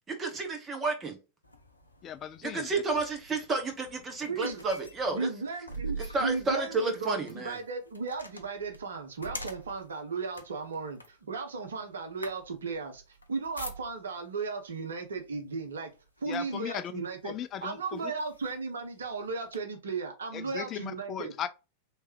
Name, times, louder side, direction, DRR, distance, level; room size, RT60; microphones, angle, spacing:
voice 1, 0.1-1.2 2.4-5.3 6.1-7.6, right 3 dB, 20° right, 1.1 m, -31 dB
sound 1, 1.4-14.3 15.1-15.3 15.7-16.7 17.4-17.5 17.9-19.6, right 2 dB, 80° left, 0.6 m, -45 dB
voice 2, 2.0-2.7 16.3-16.9 17.2-18.1 20.3-21.5, left 9 dB, 30° left, 0.3 m, -37 dB
voice 3, 4.3-4.6 5.1-15.9 16.2-17.3 17.6-21.3, right 4 dB, 70° right, 0.9 m, -35 dB
3.3 x 3.1 x 3.0 m
figure-of-eight pair, 90°, 0 cm